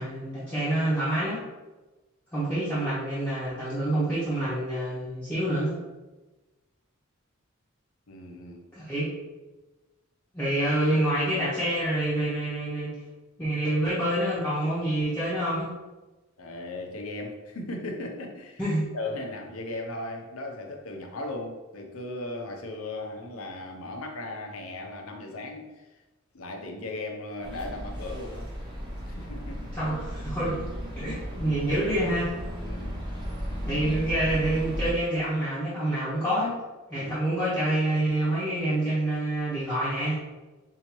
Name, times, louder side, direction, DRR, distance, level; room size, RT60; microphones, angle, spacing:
voice 1, 0.0-1.4 2.3-5.8 8.7-9.1 10.3-12.9 13.4-15.7 18.6-18.9 29.7-30.6 31.0-32.4 33.6-36.6 36.9-40.2, right 1 dB, 5° left, -12 dB, 1.1 m, -27 dB
voice 2, 8.1-8.7 16.4-18.6 18.9-25.9 26.3-28.5 29.0-29.7 31.0-31.1 32.6-32.9 36.9-37.1, left 2 dB, 80° left, 2 dB, 0.7 m, -37 dB
sound 1, 27.4-34.9, equal, 25° right, 0.8 m, -35 dB
5.4 x 2.8 x 3.0 m, 1.2 s
head